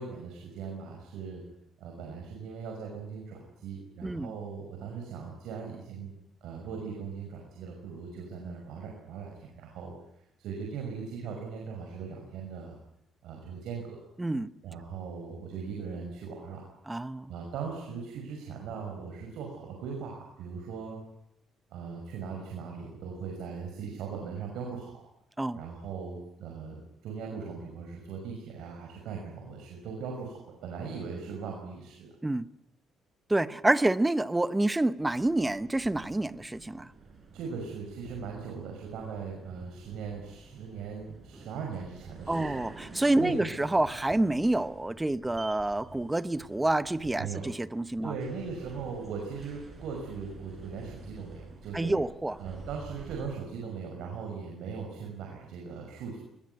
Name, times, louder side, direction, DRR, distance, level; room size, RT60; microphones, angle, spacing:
voice 1, 0.0-1.4 1.8-6.1 6.4-9.9 10.4-12.8 13.2-14.0 14.6-16.7 17.3-21.0 21.7-25.0 25.5-32.1 37.3-42.6 43.2-43.4 47.2-47.4 48.0-51.9 52.4-56.2, right 5 dB, 80° right, 6.0 m, -39 dB
voice 2, 4.0-4.3 14.2-14.5 16.9-17.3 25.4-25.6 32.2-32.5 33.3-36.9 42.3-48.1 51.7-52.4, right 2 dB, 10° right, 1.0 m, -28 dB
sound 1, 35.0-53.4, right 3 dB, 30° right, 5.9 m, -49 dB
22.0 x 21.0 x 9.5 m
cardioid pair, 125°, 0 cm